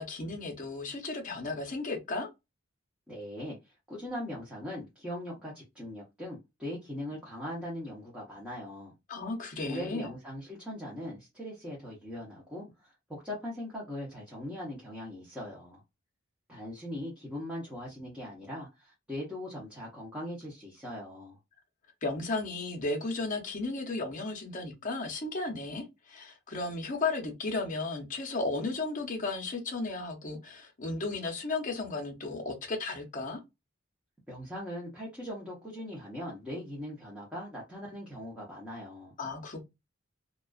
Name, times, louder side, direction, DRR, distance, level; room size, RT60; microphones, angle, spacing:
voice 1, 0.0-2.3 9.1-10.1 22.0-33.4 39.2-39.7, left 3 dB, 40° left, 0.7 m, -34 dB
voice 2, 3.1-8.9 9.6-15.8 16.5-21.4 34.3-39.1, left 1 dB, 5° right, 0.7 m, -40 dB
2.4 x 2.3 x 2.3 m
head